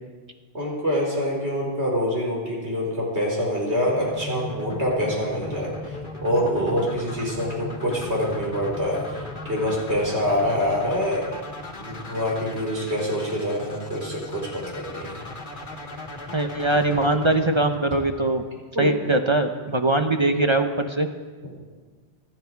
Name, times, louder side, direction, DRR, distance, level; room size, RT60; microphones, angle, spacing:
voice 1, 0.5-6.0 6.2-11.3 11.8-15.2 18.8-18.9, equal, 90° right, -2 dB, 5.0 m, -26 dB
sound 1, 3.9-18.8, left 2 dB, 50° left, 1.8 m, -37 dB
voice 2, 16.3-18.4 18.8-21.1, right 2 dB, 30° right, 6 dB, 0.9 m, -22 dB
26.0 x 10.5 x 4.7 m, 1.3 s
omnidirectional pair, 1.1 m